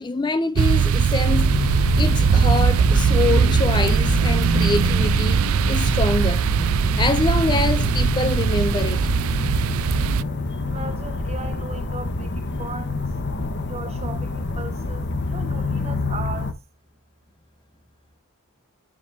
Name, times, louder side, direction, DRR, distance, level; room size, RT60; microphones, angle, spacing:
voice 1, 0.0-6.4 7.0-9.0, left 3 dB, 20° left, 0.4 m, -25 dB
sound 1, 0.6-10.2, right 6 dB, 75° right, 0.4 m, -20 dB
sound 2, 1.3-16.5, left 3 dB, 50° left, 1.1 m, -27 dB
voice 2, 10.6-13.1 13.7-16.6, right 3 dB, 30° right, 1.3 m, -37 dB
8.7 x 7.2 x 2.7 m
head